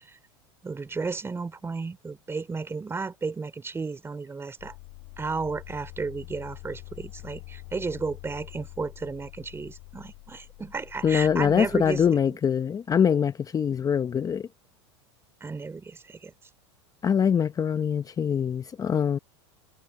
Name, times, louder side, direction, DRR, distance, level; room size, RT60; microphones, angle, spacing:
voice 1, 0.6-4.7 5.2-12.4 15.4-16.3, right 4 dB, 15° right, 2.9 m, -33 dB
sound 1, 4.6-12.1, left 32 dB, 60° left, 3.8 m, -45 dB
voice 2, 11.0-14.5 17.0-19.2, left 7 dB, 25° left, 0.7 m, -23 dB
hypercardioid pair, 100°, 15 cm